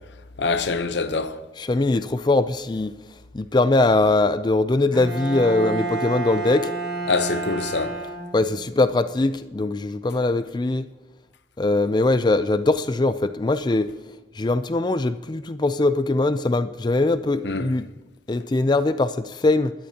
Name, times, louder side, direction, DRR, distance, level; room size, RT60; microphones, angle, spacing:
voice 1, 0.4-1.4 7.1-8.0 17.4-17.7, left 4 dB, 65° left, 0.8 m, -25 dB
voice 2, 1.6-2.9 3.3-6.7 8.3-10.9 11.6-13.9 14.4-17.9 18.3-19.7, left 2 dB, 25° left, 0.4 m, -21 dB
Bowed string instrument, 4.9-8.7, right 3 dB, 5° right, 5.4 m, -30 dB
20.0 x 12.0 x 2.9 m
head